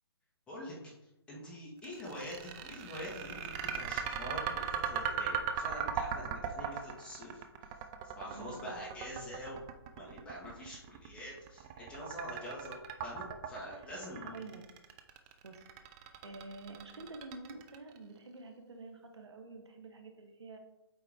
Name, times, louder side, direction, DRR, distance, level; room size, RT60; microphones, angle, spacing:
voice 1, 0.5-0.9 1.3-7.4 8.2-9.6 9.9-14.4, equal, 5° left, -6 dB, 1.8 m, -45 dB
sound 1, 1.8-18.0, right 7 dB, 15° right, 0.4 m, -38 dB
voice 2, 8.2-8.8 14.2-14.6 15.4-15.6 16.2-20.6, right 3 dB, 80° right, 4 dB, 1.4 m, -48 dB
8.3 x 4.5 x 3.7 m, 0.94 s
hypercardioid pair, 155°, 14 cm